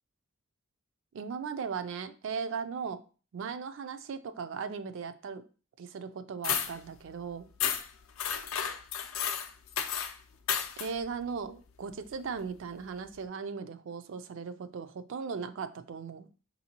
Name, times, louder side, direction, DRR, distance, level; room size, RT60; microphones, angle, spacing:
voice 1, 1.1-3.0 3.3-5.4 5.8-7.5 10.8-16.3, right 5 dB, 60° right, 10 dB, 0.4 m, -37 dB
sound 1, 6.4-6.7 7.6-7.9 8.2-10.1 10.5-10.9, left 8 dB, 70° left, 0.5 m, -32 dB
5.7 x 2.7 x 2.8 m, 0.37 s
head